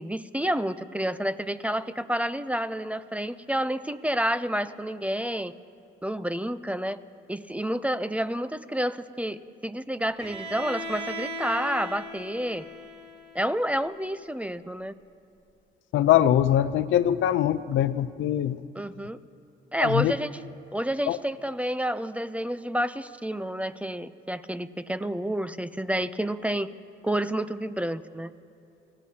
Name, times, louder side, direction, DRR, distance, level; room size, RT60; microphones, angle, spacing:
voice 1, 0.0-5.5 6.0-7.0 7.3-12.7 13.3-15.0 18.8-19.2 19.7-20.3 20.7-26.7 27.0-28.3, equal, 5° right, 13 dB, 0.5 m, -29 dB
Bowed string instrument, 10.2-14.1, equal, 35° right, 2.7 m, -38 dB
voice 2, 15.9-18.6 19.8-20.1 21.1-21.2, left 11 dB, 80° left, 13 dB, 0.5 m, -22 dB
28.5 x 16.5 x 2.8 m, 2.5 s
cardioid pair, 90°, 20 cm